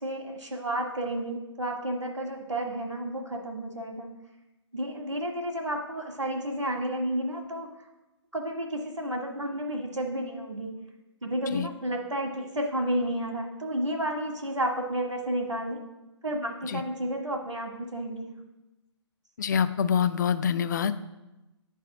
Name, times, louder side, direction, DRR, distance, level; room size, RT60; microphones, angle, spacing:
voice 1, 0.0-4.1 4.7-7.7 8.3-10.8 11.2-15.8 16.2-18.3, right 1 dB, 90° right, -2 dB, 1.3 m, -31 dB
voice 2, 19.4-20.9, left 7 dB, 40° left, 12 dB, 0.4 m, -26 dB
9.5 x 3.5 x 5.9 m, 1.0 s
figure-of-eight pair, 135°, 15 cm